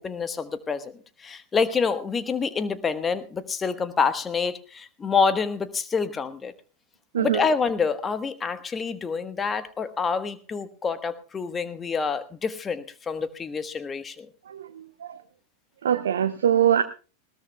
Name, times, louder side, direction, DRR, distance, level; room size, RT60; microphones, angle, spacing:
voice 1, 0.0-6.5 7.2-14.3, left 5 dB, 20° left, 12 dB, 1.3 m, -27 dB
voice 2, 14.5-15.2 15.8-16.8, right 9 dB, 65° right, 10 dB, 0.8 m, -23 dB
20.0 x 18.0 x 2.3 m, 0.36 s
figure-of-eight pair, 90°, 0 cm